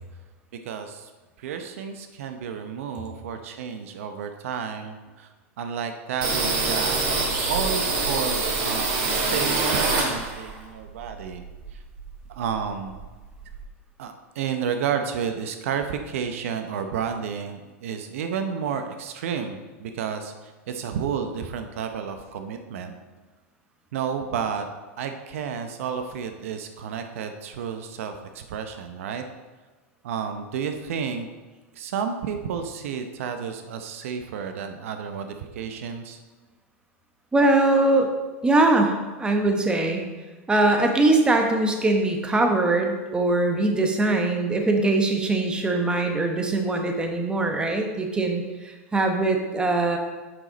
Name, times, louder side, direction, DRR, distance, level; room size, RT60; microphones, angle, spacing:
voice 1, 0.6-1.1 1.4-5.3 5.6-7.0 7.5-11.4 11.7-11.8 12.3-13.0 14.0-22.9 23.9-24.6 25.0-29.2 30.0-31.3 31.7-36.2, right 7 dB, 70° right, 7 dB, 0.7 m, -31 dB
sound 1, 6.2-10.6 10.9-12.3 12.6-12.7 12.9-13.6, right 3 dB, 50° right, 2.0 m, -25 dB
voice 2, 37.3-38.1 38.4-40.0 40.5-50.0, right 2 dB, 10° right, 3 dB, 1.0 m, -22 dB
7.8 x 5.9 x 4.0 m, 1.2 s
hypercardioid pair, 115°, 8 cm